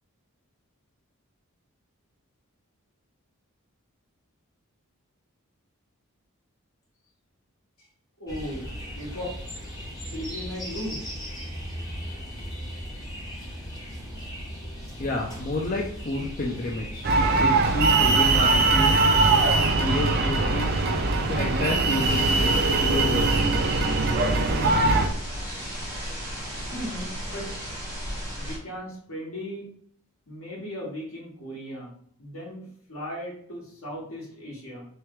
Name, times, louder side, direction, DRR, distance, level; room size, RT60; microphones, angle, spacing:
voice 1, 8.2-8.6 8.9-9.3 10.1-11.0 26.7-27.5 28.4-29.7 30.3-31.9 32.2-34.9, equal, 70° left, -4 dB, 1.6 m, -36 dB
sound 1, 8.3-23.4, equal, 15° left, 1.2 m, -38 dB
voice 2, 15.0-17.1 17.4-19.0 19.8-20.7 21.2-23.5, left 2 dB, 35° left, -1 dB, 0.4 m, -30 dB
sound 2, 17.0-25.1, right 3 dB, 45° right, 0.4 m, -21 dB
sound 3, 22.0-28.6, equal, 10° right, 1.5 m, -35 dB
3.3 x 3.3 x 3.1 m, 0.62 s
head